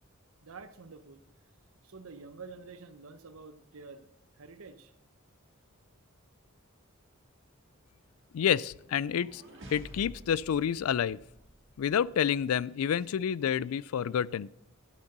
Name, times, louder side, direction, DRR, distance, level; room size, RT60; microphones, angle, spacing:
voice 1, 0.4-1.2 1.8-4.1 4.4-4.9, right 4 dB, 80° right, 0.8 m, -48 dB
voice 2, 8.3-9.4 9.7-11.2 11.8-14.5, left 8 dB, 85° left, 0.3 m, -29 dB
sound 1, 8.8-11.9, equal, 60° right, 2.2 m, -50 dB
12.0 x 6.6 x 6.7 m
head